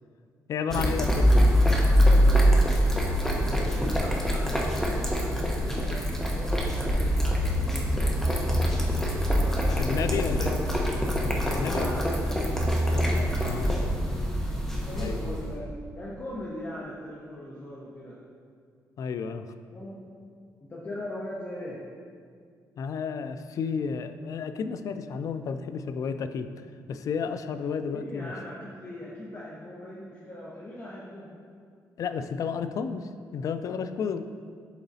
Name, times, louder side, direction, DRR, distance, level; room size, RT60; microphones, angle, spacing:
voice 1, 0.5-1.4 9.0-9.1 9.6-10.6 11.4-12.0 12.9-13.7 14.1-14.5 15.0-15.3 19.0-19.5 22.8-28.3 32.0-34.2, left 6 dB, 60° left, 10 dB, 0.3 m, -32 dB
sound 1, 0.7-15.5, equal, 5° left, 0.9 m, -24 dB
voice 2, 3.1-10.7 11.6-12.4 13.1-13.9 14.9-18.2 19.7-20.0 20.7-21.8 27.9-31.3, left 1 dB, 35° left, -6 dB, 1.0 m, -40 dB
11.5 x 3.9 x 2.7 m, 2.1 s
cardioid pair, 115°, 7 cm